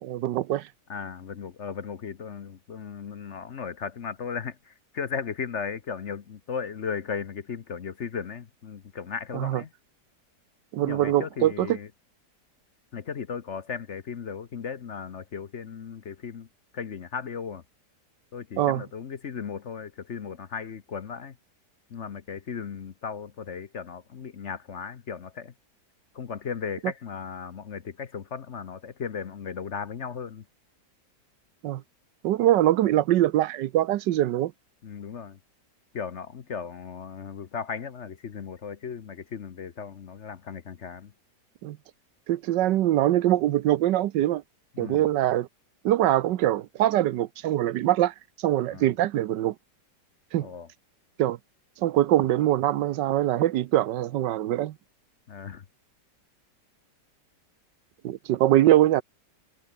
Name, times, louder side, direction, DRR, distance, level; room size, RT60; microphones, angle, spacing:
voice 1, 0.0-0.7 9.3-9.6 10.7-11.7 18.6-18.8 31.6-31.8 32.2-34.5 41.6-41.8 42.3-44.4 44.8-45.5 45.8-49.5 50.3-50.5 51.2-51.4 51.8-54.7 58.0-59.0, right 13 dB, 85° right, 1.4 m, -23 dB
voice 2, 0.9-9.7 10.8-11.9 12.9-16.5 16.7-17.6 18.3-21.3 21.9-25.5 26.1-30.4 34.8-35.4 35.9-41.1 44.8-45.1 48.7-48.9 50.4-50.7 55.3-55.6, left 6 dB, 50° left, 1.1 m, -36 dB
omnidirectional pair, 1.8 m